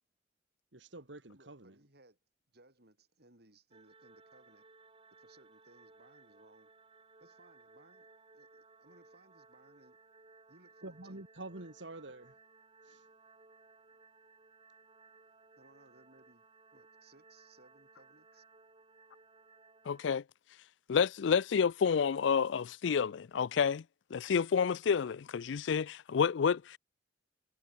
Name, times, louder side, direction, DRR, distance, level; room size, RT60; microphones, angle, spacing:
voice 1, 0.7-1.8 10.8-12.4 12.8-13.0, right 2 dB, 75° right, 2.5 m, -47 dB
voice 2, 1.3-2.2 2.5-4.7 5.1-6.7 7.2-8.1 8.3-10.0 10.5-11.2 15.6-16.4 16.7-18.4, right 2 dB, 60° right, 5.9 m, -63 dB
sound 1, 3.7-20.1, right 3 dB, 30° right, 2.8 m, -61 dB
voice 3, 19.9-20.2 20.9-23.8 24.1-26.8, left 6 dB, 75° left, 0.4 m, -29 dB
head